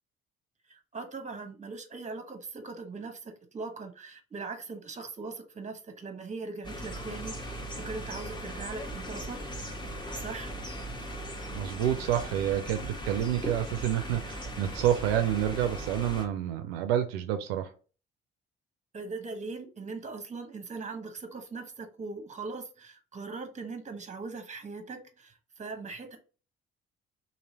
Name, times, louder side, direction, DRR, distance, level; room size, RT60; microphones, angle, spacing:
voice 1, 0.7-9.4 9.8-10.5 18.9-26.2, right 4 dB, 25° right, 7 dB, 0.9 m, -40 dB
sound 1, 6.6-16.3, equal, 15° left, 0.9 m, -38 dB
voice 2, 11.5-17.7, right 11 dB, 80° right, 9 dB, 0.4 m, -28 dB
3.0 x 2.7 x 2.7 m, 0.36 s
hypercardioid pair, 50°, 30 cm